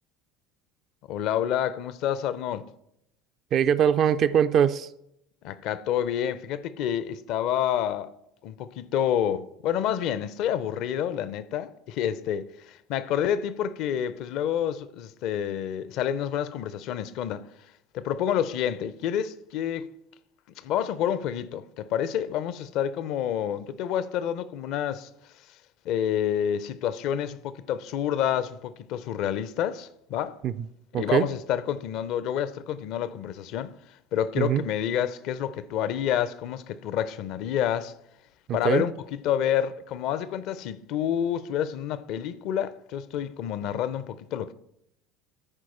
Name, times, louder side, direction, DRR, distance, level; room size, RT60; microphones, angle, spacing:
voice 1, 1.1-2.7 5.4-8.1 8.4-17.4 17.9-19.9 20.6-25.1 25.8-30.4 31.0-33.7 34.1-37.9 38.5-38.9 39.2-44.5, left 10 dB, 55° left, 0.5 m, -28 dB
voice 2, 3.5-4.9 30.4-30.7 30.9-31.3 34.4-34.6 38.5-38.9, right 8 dB, 45° right, 0.3 m, -22 dB
13.5 x 4.6 x 4.3 m
figure-of-eight pair, 65°, 0 cm